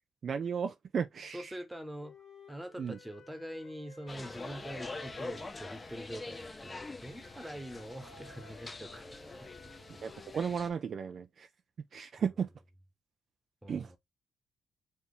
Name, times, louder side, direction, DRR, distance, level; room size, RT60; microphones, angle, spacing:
voice 1, 0.2-1.5 2.8-3.0 10.0-11.5 11.9-12.5 13.7-13.9, right 6 dB, 50° right, 0.4 m, -34 dB
voice 2, 1.3-2.2 2.5-9.1 9.4-9.8 13.6-14.0, equal, 10° right, 1.0 m, -44 dB
Wind instrument woodwind instrument, 2.0-6.1 7.0-10.4, left 4 dB, 75° left, 1.2 m, -56 dB
sound 1, 4.1-10.7, left 3 dB, 20° left, 0.7 m, -45 dB
4.2 x 2.8 x 3.3 m
cardioid pair, 90°, 0 cm